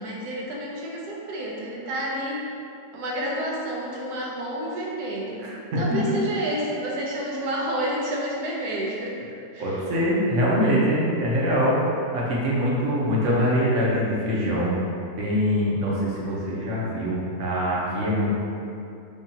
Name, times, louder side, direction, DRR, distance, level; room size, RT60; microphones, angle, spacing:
voice 1, 0.0-2.5 2.9-5.4 5.8-9.2 9.5-9.8, right 1 dB, 85° right, -3 dB, 1.2 m, -29 dB
voice 2, 9.6-14.8 15.2-18.3, equal, 60° right, -6 dB, 1.0 m, -23 dB
5.1 x 2.4 x 2.7 m, 2.6 s
omnidirectional pair, 1.6 m